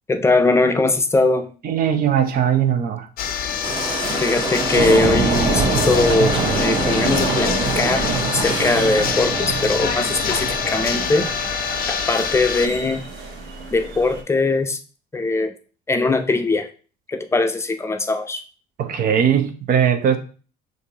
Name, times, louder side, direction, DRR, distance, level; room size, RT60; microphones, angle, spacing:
voice 1, 0.1-1.5 4.2-11.3 11.9-13.1 13.7-14.8 15.1-15.5 15.9-16.7 17.1-18.4, left 3 dB, 15° left, 7 dB, 0.5 m, -21 dB
voice 2, 1.6-3.1 18.8-20.2, right 9 dB, 55° right, 6 dB, 0.7 m, -19 dB
sound 1, 3.2-12.7, left 7 dB, 60° left, 0.5 m, -25 dB
sound 2, 3.6-9.1, right 3 dB, 25° right, 0.9 m, -27 dB
sound 3, 4.7-14.2, right 3 dB, 85° right, 1.2 m, -25 dB
6.3 x 2.7 x 2.8 m, 0.38 s
cardioid pair, 110°, 17 cm